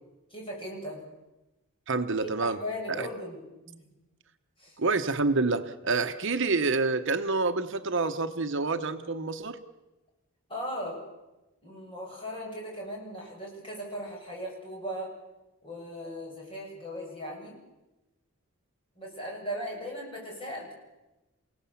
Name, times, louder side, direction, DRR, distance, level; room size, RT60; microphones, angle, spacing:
voice 1, 0.3-1.0 2.2-3.8 4.6-4.8 10.5-11.0 11.6-15.1 15.6-17.6 19.0-20.7, equal, 25° left, -2 dB, 7.4 m, -38 dB
voice 2, 1.9-2.6 3.0-3.1 4.8-9.6, right 3 dB, 55° right, 8 dB, 1.0 m, -27 dB
29.0 x 17.5 x 7.2 m, 1.0 s
head